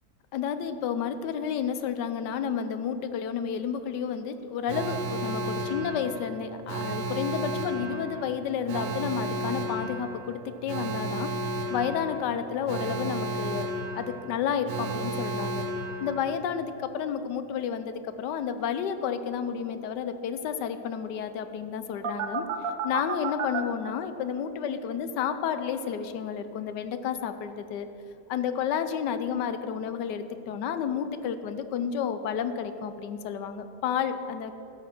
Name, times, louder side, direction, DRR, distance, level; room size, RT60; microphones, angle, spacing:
voice 1, 0.3-11.3 11.7-13.7 14.0-15.6 16.0-22.5 22.8-27.9 28.3-34.5, left 7 dB, 75° left, 10 dB, 1.2 m, -31 dB
Alarm, 4.7-16.6 22.0-23.6, right 2 dB, 85° right, 1.5 m, -33 dB
14.5 x 6.6 x 6.0 m, 2.9 s
omnidirectional pair, 1.9 m